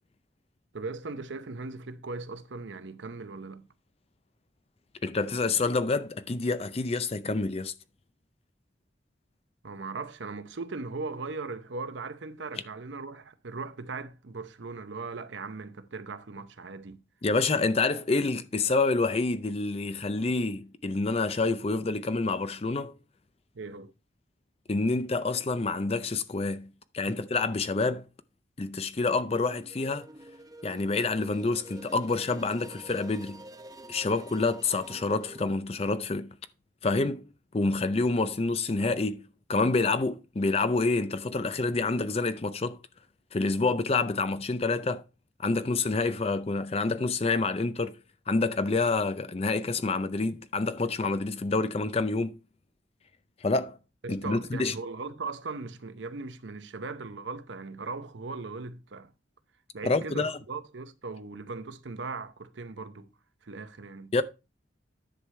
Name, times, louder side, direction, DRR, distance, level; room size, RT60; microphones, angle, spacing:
voice 1, 0.7-3.7 9.6-17.0 23.5-23.9 27.1-27.2 43.6-43.7 54.0-59.1 59.7-63.1 63.4-64.1, right 3 dB, 70° right, 0.7 m, -38 dB
voice 2, 5.0-7.7 17.2-22.9 24.7-28.1 28.6-30.1 30.6-33.4 33.9-36.4 36.8-37.3 37.5-42.8 43.3-45.0 45.4-48.0 48.3-52.4 53.4-53.8 54.1-54.7 59.8-60.3 64.1-64.2, left 3 dB, 30° left, 0.5 m, -28 dB
sound 1, 29.5-35.5, right 1 dB, 20° right, 0.7 m, -47 dB
10.5 x 6.3 x 3.2 m
head